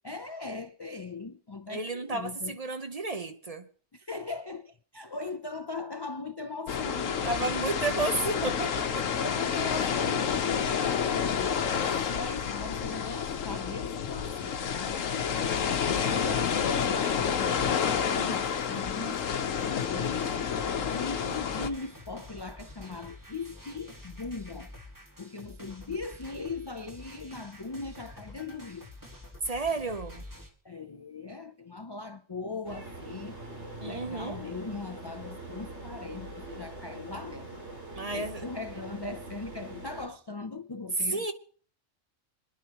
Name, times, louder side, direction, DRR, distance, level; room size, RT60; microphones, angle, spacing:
voice 1, 0.0-2.6 3.9-7.5 9.2-15.5 16.0-19.2 19.5-20.3 20.9-24.7 25.2-28.9 30.6-33.4 33.8-37.6 38.1-41.3, left 3 dB, 45° left, 0.3 m, -39 dB
voice 2, 1.7-3.7 7.2-9.1 11.7-12.1 12.4-12.6 15.9-16.5 29.4-30.2 33.8-34.4 37.9-38.4 41.0-41.3, right 3 dB, 35° right, 0.8 m, -32 dB
sound 1, 6.7-21.7, left 7 dB, 90° left, 1.3 m, -29 dB
sound 2, 14.8-16.5 17.0-30.5, left 1 dB, 15° right, 1.9 m, -48 dB
sound 3, 32.6-40.1, right 2 dB, 60° right, 2.7 m, -43 dB
27.0 x 10.5 x 2.9 m
omnidirectional pair, 1.3 m